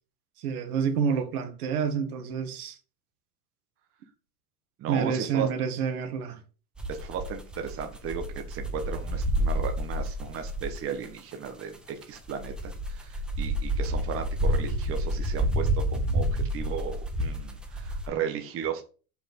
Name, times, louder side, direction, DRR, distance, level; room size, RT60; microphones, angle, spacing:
voice 1, 0.4-2.8 4.9-6.4, right 6 dB, 70° right, 1.7 m, -28 dB
voice 2, 4.8-5.5 6.9-18.8, right 7 dB, 30° right, 1.3 m, -35 dB
sound 1, 6.8-11.1 11.5-11.6 12.0-18.1, equal, ahead, 0.3 m, -29 dB
6.8 x 5.6 x 5.2 m
supercardioid pair, 140°, 45 cm